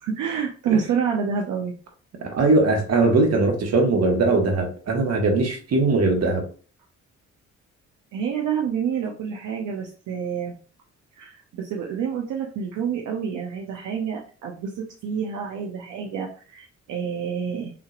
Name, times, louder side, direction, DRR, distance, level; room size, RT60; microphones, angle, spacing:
voice 1, 0.0-1.7 8.1-10.5 11.1-17.7, right 7 dB, 80° right, 0 dB, 0.8 m, -28 dB
voice 2, 2.2-6.4, right 3 dB, 55° right, 2 dB, 1.6 m, -20 dB
6.1 x 3.0 x 2.5 m, 0.39 s
cardioid pair, 90°, 30 cm